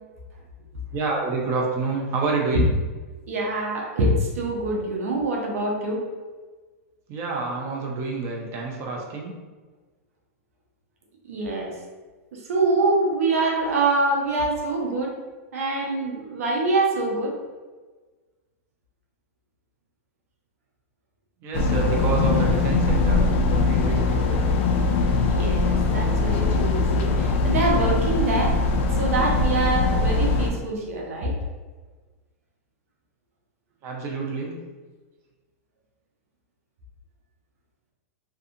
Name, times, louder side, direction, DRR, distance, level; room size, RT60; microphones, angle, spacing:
voice 1, 0.9-2.8 7.1-9.3 21.4-23.3 23.5-24.4 33.8-34.6, right 3 dB, 35° right, -1 dB, 0.5 m, -28 dB
voice 2, 3.3-6.0 11.3-11.7 12.3-15.1 15.5-17.3 25.3-28.6 28.9-31.3, right 2 dB, 80° right, -1 dB, 0.6 m, -25 dB
sound 1, 21.5-30.5, left 3 dB, 60° left, 0.4 m, -21 dB
2.7 x 2.3 x 2.5 m, 1.3 s
hypercardioid pair, 125°, 8 cm